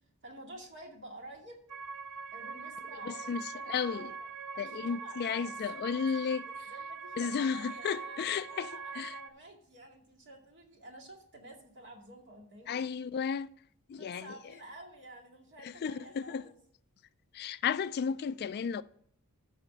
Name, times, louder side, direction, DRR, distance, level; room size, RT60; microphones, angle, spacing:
voice 1, 0.2-1.6 2.3-4.3 4.5-12.8 13.9-16.5, right 1 dB, 55° right, 2.2 m, -51 dB
sound 1, 1.7-9.3, right 5 dB, 75° right, 0.7 m, -43 dB
voice 2, 3.0-4.1 4.6-6.4 7.2-9.2 12.7-13.5 13.9-14.4 15.6-16.4 17.3-18.8, left 6 dB, 45° left, 0.3 m, -34 dB
12.5 x 4.2 x 6.3 m
head